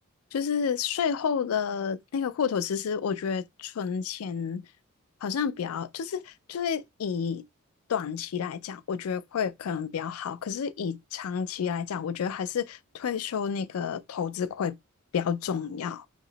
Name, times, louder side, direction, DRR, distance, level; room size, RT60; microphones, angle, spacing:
voice 1, 0.3-4.6 5.2-7.4 7.9-14.8 15.1-16.1, left 7 dB, 80° left, 0.4 m, -30 dB
3.0 x 2.9 x 3.8 m
head